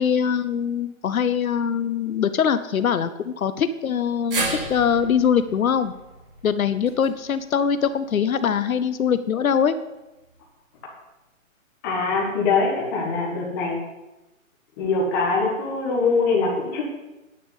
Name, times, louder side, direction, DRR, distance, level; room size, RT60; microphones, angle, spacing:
voice 1, 0.0-5.9 6.4-9.8, left 7 dB, 80° left, 12 dB, 0.9 m, -22 dB
sound 1, 4.3-8.6 8.9-9.0 10.2-10.3, right 2 dB, 40° right, 3.3 m, -34 dB
voice 2, 11.8-13.8 14.8-16.8, left 4 dB, 15° left, -3 dB, 1.6 m, -23 dB
10.0 x 5.5 x 8.4 m, 1.0 s
hypercardioid pair, 175°, 41 cm